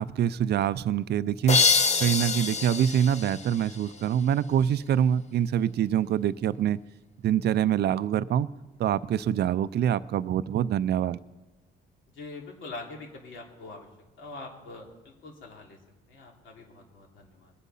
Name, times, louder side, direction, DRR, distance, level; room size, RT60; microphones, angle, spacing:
voice 1, 0.0-1.6 2.0-6.8 7.2-8.5 8.8-11.2, right 9 dB, 55° right, 15 dB, 0.5 m, -25 dB
sound 1, 1.5-4.2, left 5 dB, 35° left, 1.0 m, -26 dB
voice 2, 12.1-13.9 14.2-15.8 16.1-17.5, left 3 dB, 75° left, 0 dB, 2.9 m, -43 dB
21.0 x 8.3 x 5.6 m, 1.2 s
cardioid pair, 90°, 20 cm